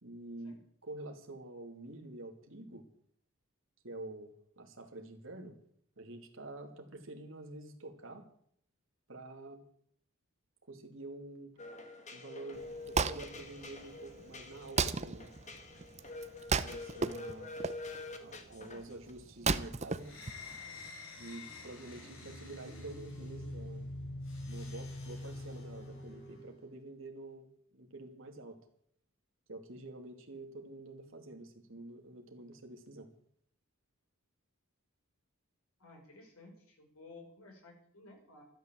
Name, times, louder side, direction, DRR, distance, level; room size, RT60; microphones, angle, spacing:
voice 1, 0.0-2.9 3.8-5.5 6.0-8.2 9.1-9.6 10.7-11.5 12.1-15.3 16.5-17.5 18.2-20.1 21.2-23.9 24.5-28.6 29.5-33.1, right 2 dB, 65° right, 4 dB, 2.5 m, -48 dB
sound 1, 11.6-19.1, left 2 dB, 30° left, 1.7 m, -47 dB
Wood, 12.5-20.9, right 4 dB, 30° right, 0.7 m, -36 dB
sound 2, 20.0-26.6, left 1 dB, 60° left, 4.5 m, -45 dB
voice 2, 35.8-38.4, left 2 dB, 85° left, 1 dB, 6.0 m, -55 dB
13.0 x 12.0 x 7.5 m, 0.64 s
head